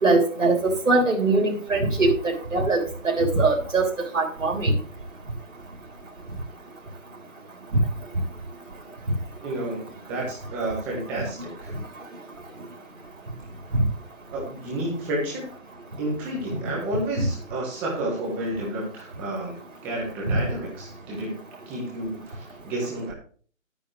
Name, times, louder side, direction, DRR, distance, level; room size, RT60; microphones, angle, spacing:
voice 1, 0.0-4.8, right 3 dB, 70° right, -1 dB, 3.6 m, -22 dB
voice 2, 9.4-11.7 14.3-15.5 16.0-19.6 19.8-21.3 21.7-23.1, right 1 dB, 5° right, -3 dB, 1.3 m, -30 dB
13.0 x 9.1 x 3.3 m, 0.42 s
figure-of-eight pair, 165°, 41 cm